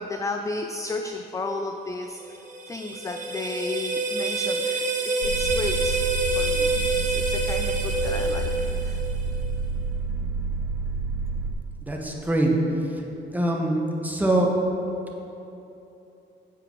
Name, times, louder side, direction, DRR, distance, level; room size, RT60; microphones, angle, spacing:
voice 1, 0.0-2.4 2.7-6.1 6.4-9.0, left 3 dB, 15° left, 5 dB, 0.3 m, -33 dB
sound 1, 2.2-9.3, right 2 dB, 40° right, 1.1 m, -27 dB
sound 2, 5.2-11.5, right 4 dB, 75° right, 0.6 m, -29 dB
voice 2, 11.8-12.5 12.8-12.9 13.3-14.5, right 1 dB, 10° right, -1 dB, 1.0 m, -23 dB
7.7 x 4.8 x 4.5 m, 3.0 s
cardioid pair, 90°, 20 cm